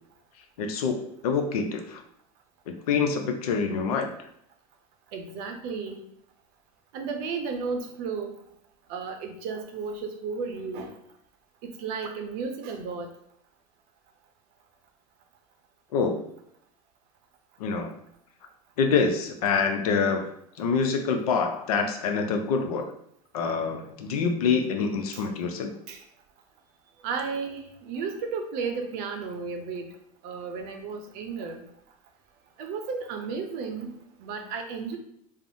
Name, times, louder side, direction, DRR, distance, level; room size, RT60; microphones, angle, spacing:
voice 1, 0.6-2.0 2.7-4.1 15.9-16.2 17.6-17.9 18.8-20.3 20.6-22.9 23.3-25.7, left 5 dB, 80° left, 5 dB, 0.5 m, -26 dB
voice 2, 5.1-6.0 6.9-8.3 8.9-10.9 11.6-13.1 25.1-25.2 25.9-26.0 27.0-29.9 30.2-31.6 32.6-35.0, right 5 dB, 55° right, 4 dB, 0.6 m, -33 dB
3.4 x 2.0 x 2.6 m, 0.72 s
hypercardioid pair, 105°, 19 cm